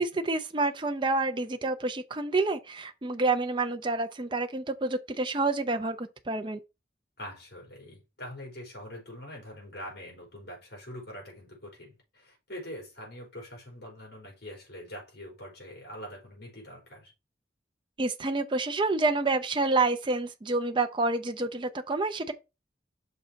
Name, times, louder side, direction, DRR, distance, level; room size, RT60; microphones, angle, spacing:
voice 1, 0.0-6.6 18.0-22.3, right 3 dB, 25° right, 0.5 m, -28 dB
voice 2, 7.2-17.1, equal, 55° left, 4.7 m, -44 dB
6.3 x 4.0 x 4.4 m
head